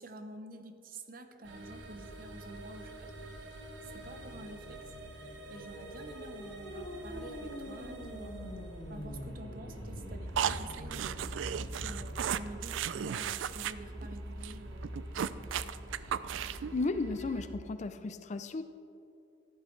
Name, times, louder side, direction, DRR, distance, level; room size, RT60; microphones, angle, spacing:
voice 1, 0.0-3.1 3.8-4.9 5.2-8.5 8.9-11.2 11.8-15.8, right 2 dB, 50° right, 7 dB, 0.8 m, -49 dB
sound 1, 1.4-17.5, right 1 dB, 75° right, 1.3 m, -45 dB
sound 2, 5.3-12.4, equal, 75° left, 1.7 m, -45 dB
sound 3, 10.4-13.7 14.0-14.1 14.4-14.5 14.8-16.7, right 9 dB, 90° right, 0.3 m, -35 dB
voice 2, 16.7-18.6, left 3 dB, 40° left, 10 dB, 0.4 m, -34 dB
14.0 x 11.5 x 3.2 m, 2.6 s
head